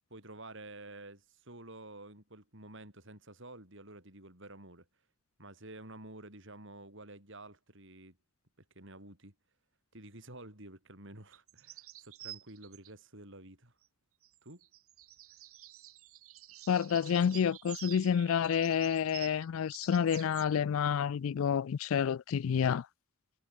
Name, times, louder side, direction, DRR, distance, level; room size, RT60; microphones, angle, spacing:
voice 1, 0.1-4.9 5.4-8.2 8.8-9.3 9.9-13.7 14.4-14.6, right 2 dB, 60° right, 7.0 m, -50 dB
sound 1, 11.3-12.9 14.2-20.5, right 14 dB, 80° right, 2.2 m, -50 dB
voice 2, 16.7-22.9, left 7 dB, 70° left, 0.3 m, -29 dB
head